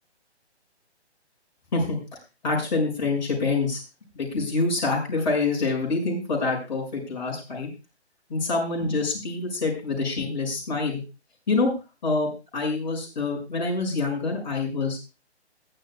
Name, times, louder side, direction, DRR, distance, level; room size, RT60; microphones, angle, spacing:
voice 1, 2.4-3.8 4.1-7.7 8.3-11.0 11.5-11.7 12.0-15.0, left 3 dB, 40° left, 0 dB, 6.6 m, -26 dB
21.5 x 12.0 x 2.3 m, 0.31 s
figure-of-eight pair, 140°, 34 cm